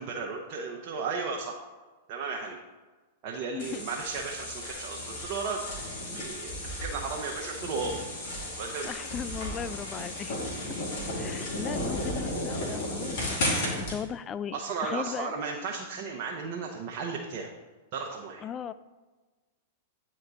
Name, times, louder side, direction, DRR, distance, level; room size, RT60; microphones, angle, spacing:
voice 1, 0.0-1.6 2.1-2.6 3.2-5.7 6.1-7.9 8.6-9.0 14.5-17.5 17.9-18.4, right 5 dB, 50° right, 0 dB, 0.9 m, -35 dB
voice 2, 3.5-3.8 8.8-10.4 10.7-10.8 11.1-15.3 18.4-18.7, left 8 dB, 30° left, 14 dB, 0.3 m, -37 dB
sound 1, 3.6-14.0, left 1 dB, 60° left, 2.3 m, -34 dB
9.4 x 4.3 x 4.0 m, 1.3 s
hypercardioid pair, 105°, 0 cm